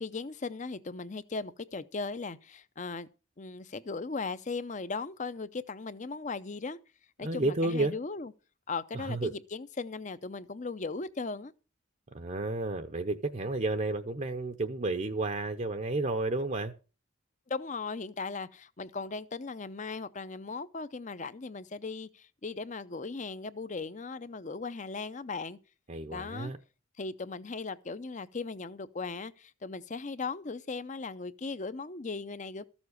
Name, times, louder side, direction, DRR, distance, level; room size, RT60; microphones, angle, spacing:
voice 1, 0.0-3.1 3.4-6.8 7.2-8.3 8.7-11.5 17.5-25.6 26.1-26.5 27.0-32.6, left 4 dB, 35° left, 0.6 m, -38 dB
voice 2, 7.2-8.0 8.9-9.3 12.1-16.7 25.9-26.6, right 2 dB, 35° right, 0.7 m, -31 dB
14.0 x 7.2 x 6.3 m
head